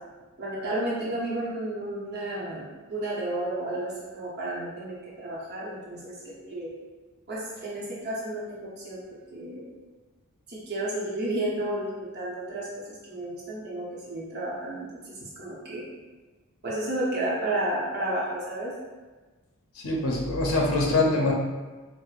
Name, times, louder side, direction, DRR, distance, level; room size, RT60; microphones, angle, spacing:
voice 1, 0.4-6.7 7.3-9.7 10.5-15.8 16.6-18.7, right 1 dB, 50° right, -7 dB, 0.8 m, -32 dB
voice 2, 19.7-21.3, left 2 dB, 85° left, -1 dB, 0.6 m, -24 dB
4.6 x 2.1 x 2.4 m, 1.3 s
head